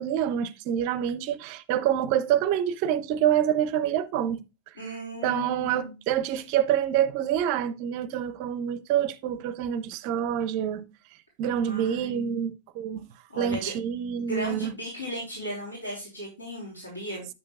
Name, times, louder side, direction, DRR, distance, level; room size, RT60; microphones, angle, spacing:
voice 1, 0.0-4.4 5.2-10.9 11.4-13.1 13.4-14.7, right 10 dB, 45° right, 0.5 m, -27 dB
voice 2, 4.8-5.9 11.6-12.3 13.3-13.7 14.2-17.3, equal, 85° left, 3.3 m, -36 dB
8.3 x 6.4 x 2.3 m
figure-of-eight pair, 90°, 0 cm